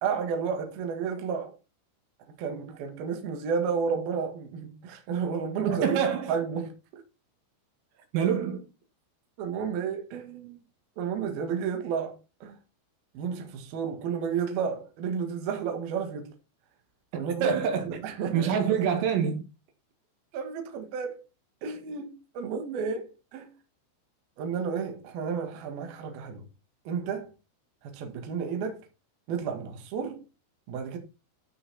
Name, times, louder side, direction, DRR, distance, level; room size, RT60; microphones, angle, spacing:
voice 1, 0.0-1.6 2.4-6.0 6.3-7.0 9.4-10.6 11.0-12.6 13.1-16.3 17.2-17.5 17.8-18.8 20.3-21.2 21.6-23.5 24.4-26.4 26.8-27.3 27.8-28.8 29.3-30.2 30.7-31.0, right 6 dB, 55° right, 3.3 m, -32 dB
voice 2, 5.7-6.3 8.1-8.6 17.1-18.0 18.3-19.4, right 7 dB, 85° right, 4.7 m, -26 dB
13.0 x 5.5 x 4.2 m
omnidirectional pair, 5.8 m